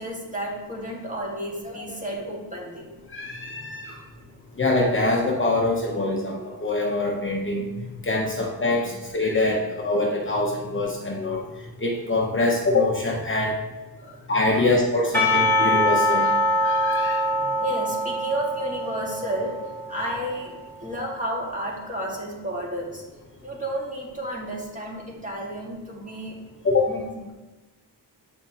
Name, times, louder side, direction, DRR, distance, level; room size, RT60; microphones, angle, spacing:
voice 1, 0.0-2.9 8.8-8.9 14.0-14.7 17.4-19.6 19.9-20.5 20.8-23.0 23.4-26.3 26.9-27.3, equal, 20° right, -3 dB, 2.0 m, -32 dB
voice 2, 3.1-4.0 4.6-7.7 8.0-11.4 11.8-13.6 14.3-17.2 26.6-26.9, left 2 dB, 30° left, -2 dB, 1.0 m, -24 dB
Percussion / Church bell, 15.1-20.4, equal, 5° left, 1.7 m, -23 dB
8.0 x 5.8 x 3.0 m, 1.1 s
cardioid pair, 95°, 42 cm